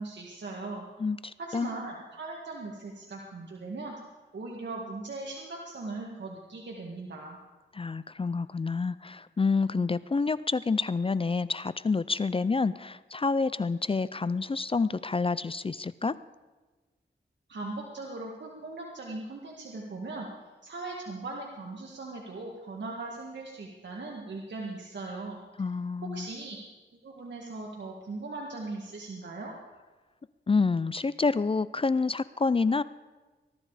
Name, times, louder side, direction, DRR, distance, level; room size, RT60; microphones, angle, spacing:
voice 1, 0.0-0.8 1.4-4.0 4.3-7.4 17.5-20.3 20.6-25.4 26.0-26.6 27.0-29.5, right 3 dB, 70° right, -1 dB, 2.0 m, -39 dB
voice 2, 1.0-1.7 7.7-16.1 25.6-26.3 30.5-32.8, left 4 dB, 30° left, 17 dB, 0.4 m, -28 dB
20.5 x 12.0 x 5.0 m, 1.3 s
wide cardioid pair, 80°, 19 cm